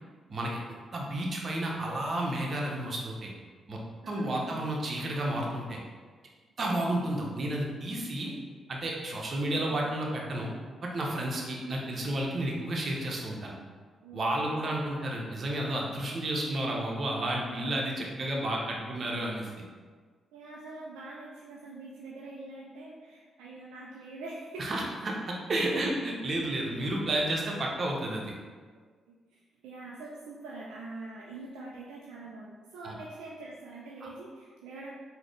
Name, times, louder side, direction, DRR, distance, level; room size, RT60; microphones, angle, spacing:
voice 1, 0.3-0.6 0.9-3.3 3.7-3.8 4.1-5.8 6.6-8.3 8.7-10.5 10.8-13.5 14.1-19.5 24.6-28.3 32.8-33.0 34.0-34.1, right 1 dB, 50° right, -1 dB, 0.9 m, -31 dB
voice 2, 4.0-4.6 6.8-7.0 14.0-14.4 20.3-24.9 25.7-25.8 29.1-34.9, right 2 dB, 80° right, -4 dB, 0.4 m, -44 dB
3.9 x 2.8 x 3.2 m, 1.5 s
hypercardioid pair, 40°, 0 cm